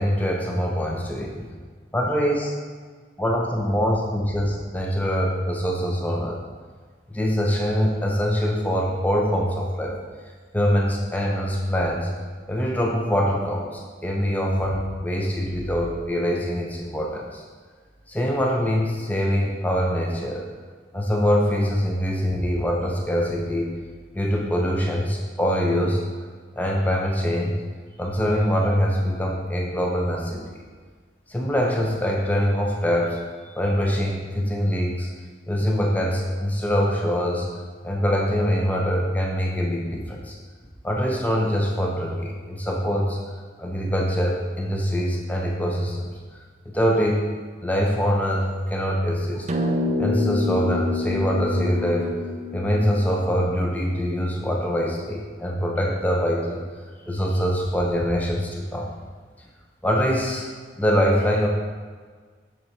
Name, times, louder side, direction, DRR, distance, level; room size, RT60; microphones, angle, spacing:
voice 1, 0.0-1.4 1.9-2.5 3.2-6.4 7.1-10.0 10.5-12.1 12.5-17.4 18.1-20.4 20.9-23.7 24.1-26.0 26.6-27.5 28.0-30.4 31.3-33.2 33.5-35.1 35.5-37.5 37.8-40.3 40.8-43.2 43.6-46.1 46.7-47.2 47.6-49.5 50.0-52.2 52.5-56.6 57.1-58.9 59.8-60.5 60.8-61.5, equal, 10° left, -1 dB, 0.6 m, -23 dB
sound 1, 49.5-54.0, left 3 dB, 35° right, 0.4 m, -27 dB
6.4 x 4.3 x 4.4 m, 1.5 s
head